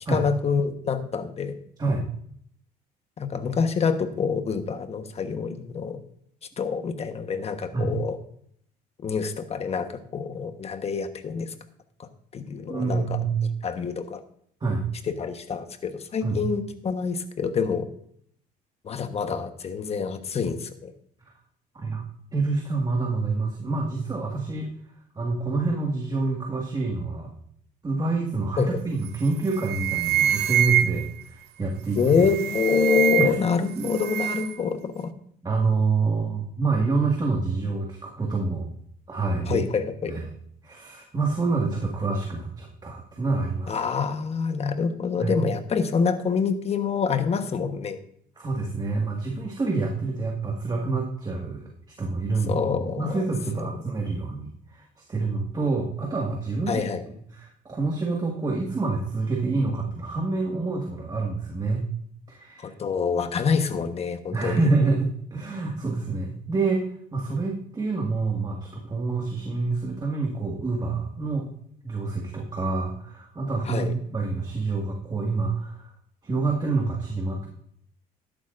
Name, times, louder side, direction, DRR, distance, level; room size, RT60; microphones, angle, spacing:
voice 1, 0.1-1.5 3.2-6.0 6.6-8.2 9.0-11.5 12.3-13.2 13.6-14.2 15.1-17.9 18.8-20.9 28.6-28.8 32.0-35.1 39.5-40.1 43.7-48.0 52.5-53.2 56.7-57.0 62.6-64.7 73.7-73.9, left 6 dB, 40° left, 8 dB, 1.2 m, -26 dB
voice 2, 12.7-13.4 14.6-14.8 16.2-16.4 21.7-22.0 22.3-24.7 25.2-27.3 27.8-32.3 33.2-33.4 33.8-33.9 35.4-38.7 39.1-39.6 40.1-40.3 40.6-43.8 45.2-45.4 48.4-51.7 52.0-56.8 57.3-61.8 62.3-62.7 64.3-71.5 71.8-75.9 76.2-77.5, right 3 dB, 25° right, 0 dB, 1.9 m, -27 dB
sound 1, 29.0-29.3 29.6-31.2 32.0-33.5 33.8-34.6, right 11 dB, 75° right, 0.6 m, -25 dB
13.0 x 11.5 x 2.6 m, 0.65 s
cardioid pair, 110°, 17 cm